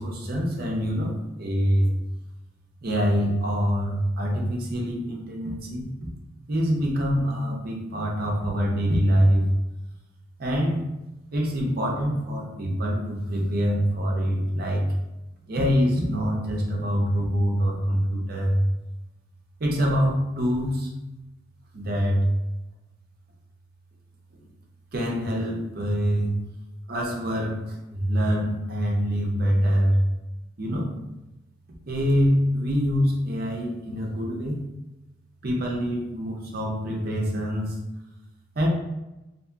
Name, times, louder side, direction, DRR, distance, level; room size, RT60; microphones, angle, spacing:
voice 1, 0.0-1.9 2.8-5.9 6.5-9.4 10.4-10.8 11.3-14.8 15.5-18.6 19.6-20.9 21.7-22.3 24.4-24.5 24.9-26.4 26.9-30.0 30.6-30.9 31.9-34.6 35.4-37.8 38.6-38.7, equal, 50° right, -1 dB, 0.6 m, -25 dB
2.8 x 2.7 x 2.3 m, 0.99 s
head